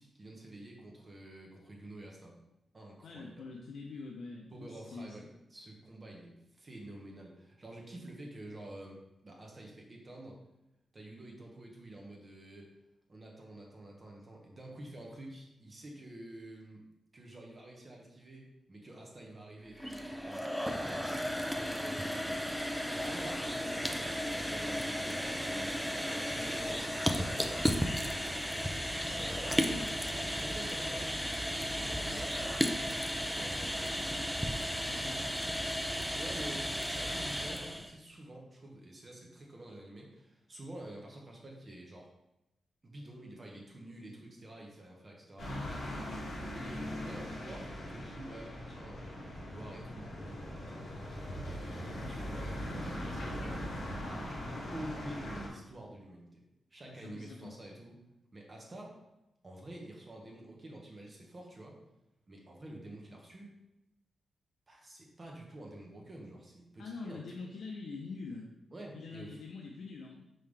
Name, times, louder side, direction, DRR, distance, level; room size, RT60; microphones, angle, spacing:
voice 1, 0.0-2.3 2.7-3.5 4.5-10.4 10.9-12.7 13.1-16.8 17.1-27.1 27.7-28.4 29.3-32.8 33.3-34.1 34.9-35.2 35.8-42.1 42.8-50.7 51.4-54.3 54.7-56.4 56.7-58.0 58.3-59.0 59.4-61.8 62.3-63.5 64.7-67.5 68.7-69.4, right 1 dB, 25° right, -1 dB, 1.1 m, -49 dB
voice 2, 3.0-5.3 29.7-30.3 34.7-35.2 56.8-57.5 66.8-68.5 68.9-70.2, left 4 dB, 90° left, -1 dB, 0.7 m, -45 dB
sound 1, 19.7-37.9, equal, ahead, 0.4 m, -34 dB
sound 2, 45.4-55.5, left 1 dB, 55° left, 2.3 m, -40 dB
5.6 x 5.4 x 3.3 m, 0.89 s
wide cardioid pair, 175°, 0 cm